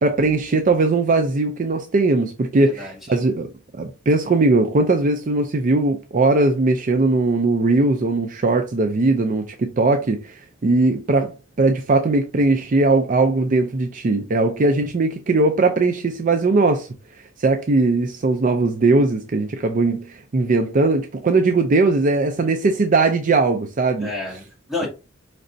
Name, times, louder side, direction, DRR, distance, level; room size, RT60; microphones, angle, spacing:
voice 1, 0.0-3.5 3.8-11.3 11.6-16.9 17.4-24.1 24.8-24.9, right 3 dB, 40° right, 0.4 m, -19 dB
voice 2, 2.6-3.2 24.0-24.9, left 3 dB, ahead, 2.4 m, -30 dB
4.9 x 3.3 x 2.6 m
head